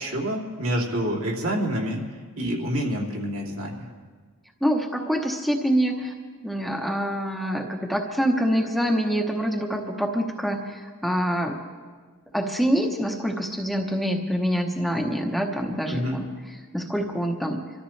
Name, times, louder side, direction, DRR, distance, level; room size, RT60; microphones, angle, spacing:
voice 1, 0.0-2.0 2.4-3.9 15.9-16.2, equal, 75° right, -2 dB, 2.9 m, -27 dB
voice 2, 4.6-6.1 6.4-11.6 12.3-16.3 16.7-17.6, equal, ahead, 1 dB, 1.0 m, -25 dB
26.0 x 13.5 x 3.3 m, 1.5 s
head